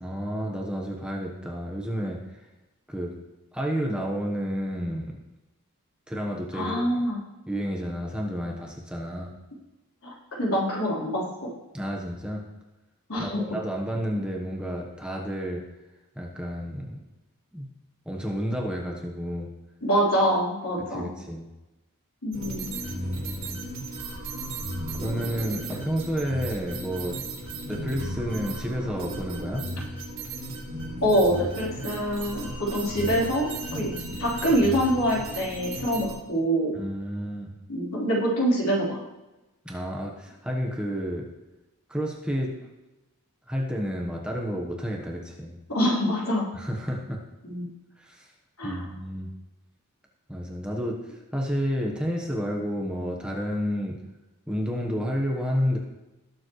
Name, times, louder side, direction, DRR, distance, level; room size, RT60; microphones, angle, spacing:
voice 1, 0.0-2.2 2.9-3.1 3.5-5.2 6.1-6.8 7.5-9.3 11.7-12.5 13.2-15.6 16.2-17.0 17.5-17.7 18.0-19.5 20.9-21.5 22.8-23.6 25.0-27.2 27.5-29.7 36.7-37.5 39.6-41.3 41.9-42.6 43.5-45.6 46.5-47.2 48.0-48.3 48.6-49.3 50.3-54.0 54.5-55.8, equal, 5° right, -1 dB, 1.2 m, -30 dB
voice 2, 6.5-7.2 10.0-10.1 10.4-11.5 13.1-13.4 19.8-21.1 22.2-22.8 31.0-33.9 34.2-36.7 37.7-39.0 45.7-46.5 47.4-47.7 48.6-48.8, equal, 70° left, -5 dB, 3.9 m, -25 dB
sound 1, 22.3-36.1, right 1 dB, 60° right, 4.2 m, -35 dB
19.0 x 7.3 x 3.2 m, 1.0 s
head